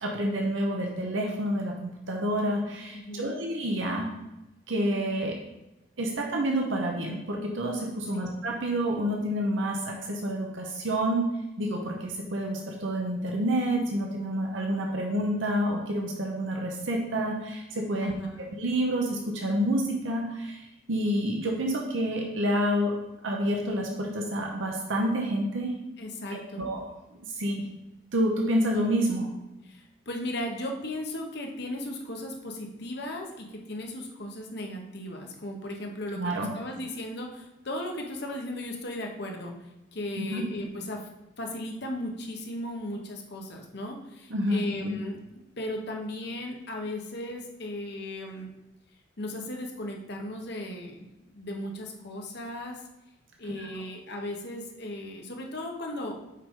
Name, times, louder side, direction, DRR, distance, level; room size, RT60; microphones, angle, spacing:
voice 1, 0.0-4.1 4.7-5.4 6.0-11.3 11.6-18.1 18.4-20.6 20.9-22.9 23.2-25.8 26.3-26.8 27.2-27.6 28.1-29.3 36.1-36.5 40.2-40.5 44.3-45.0 53.6-53.7, equal, 70° right, 0 dB, 0.9 m, -28 dB
voice 2, 2.9-3.4 8.1-8.3 18.0-18.5 26.0-26.7 29.6-39.5 39.9-41.1 41.4-45.2 45.6-48.5 49.2-51.0 51.3-52.8 53.4-56.2, left 1 dB, 55° left, 1 dB, 1.0 m, -36 dB
5.6 x 4.9 x 3.8 m, 0.96 s
head